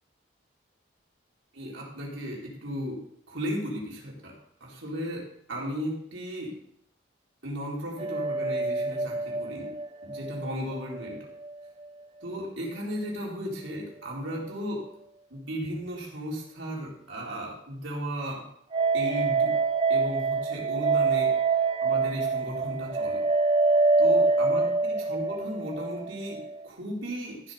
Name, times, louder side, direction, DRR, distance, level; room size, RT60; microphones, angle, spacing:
voice 1, 1.5-3.0 3.3-6.5 7.4-9.7 10.0-11.3 12.2-14.9 15.3-18.5 18.9-19.6 19.9-21.3 21.8-23.3 24.0-27.5, equal, 85° right, -3 dB, 4.3 m, -35 dB
sound 1, 8.0-11.2 11.4-11.5 18.7-26.7, right 4 dB, 30° right, 0.4 m, -26 dB
14.5 x 7.8 x 5.2 m, 0.68 s
head